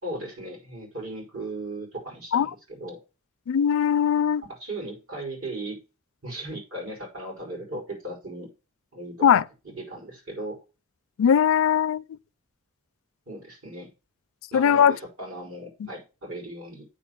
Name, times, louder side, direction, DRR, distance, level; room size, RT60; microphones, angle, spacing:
voice 1, 0.0-3.0 4.6-5.8 6.2-8.5 8.9-9.3 9.6-10.6 13.3-13.9 14.5-16.9, right 1 dB, 70° right, 5.0 m, -37 dB
voice 2, 3.5-4.4 9.2-9.4 11.2-12.0 14.5-14.9, left 8 dB, 65° left, 0.4 m, -20 dB
9.0 x 3.9 x 6.3 m
head